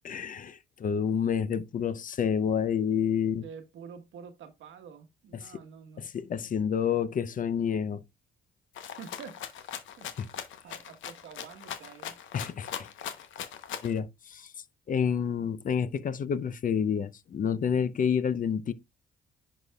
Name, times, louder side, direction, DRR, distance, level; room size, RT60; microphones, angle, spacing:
voice 1, 0.0-3.4 6.0-8.0 10.2-10.3 12.3-12.9 13.8-14.5 14.9-18.7, left 7 dB, 45° left, 0.5 m, -29 dB
voice 2, 3.2-6.1 9.0-10.2 10.6-12.2, right 7 dB, 75° right, 1.2 m, -48 dB
Rattle (instrument), 8.7-14.0, left 9 dB, 75° left, 0.9 m, -40 dB
10.0 x 4.1 x 2.3 m
cardioid pair, 90°, 20 cm